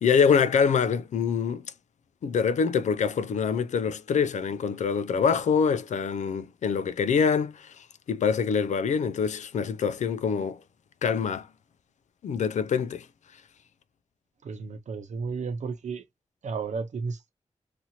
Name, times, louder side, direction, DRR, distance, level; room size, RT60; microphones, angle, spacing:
voice 1, 0.0-1.6 2.2-10.6 11.0-11.5 12.2-13.1, left 6 dB, 85° left, 0.4 m, -25 dB
voice 2, 14.4-16.1 16.4-17.3, right 5 dB, 80° right, 0.7 m, -33 dB
2.8 x 2.5 x 2.7 m
cardioid pair, 70°, 12 cm